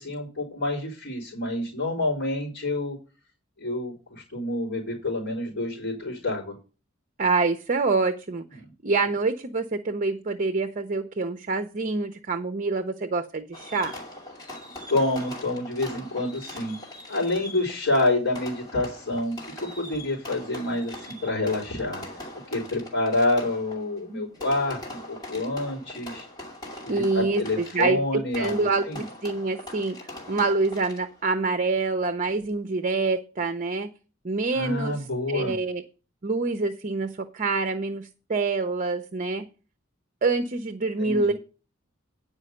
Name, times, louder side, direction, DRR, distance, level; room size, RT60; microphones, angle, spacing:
voice 1, 0.0-3.0 3.6-6.6 14.9-16.8 17.1-19.3 19.6-22.0 22.5-26.3 26.8-29.0 34.5-35.6 41.0-41.3, left 2 dB, 50° left, -6 dB, 4.1 m, -28 dB
voice 2, 7.2-8.4 8.8-13.9 26.9-30.0 30.3-33.9 34.2-35.8 36.2-39.5 40.2-41.3, right 3 dB, 40° right, 9 dB, 0.6 m, -26 dB
Fireworks, 13.5-31.3, left 1 dB, 20° left, 2.6 m, -41 dB
9.7 x 5.1 x 6.5 m, 0.34 s
head